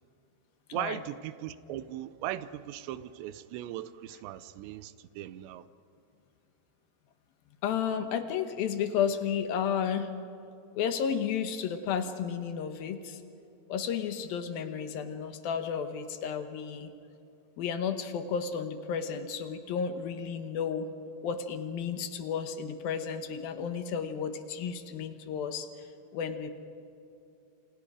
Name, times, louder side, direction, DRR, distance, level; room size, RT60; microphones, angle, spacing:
voice 1, 0.7-5.7, right 13 dB, 80° right, 14 dB, 2.8 m, -38 dB
voice 2, 7.6-10.1 10.8-13.2 13.7-16.9 17.6-20.9 21.2-25.7 26.1-26.5, left 7 dB, 70° left, 8 dB, 2.4 m, -32 dB
29.5 x 27.0 x 4.9 m, 2.7 s
omnidirectional pair, 5.3 m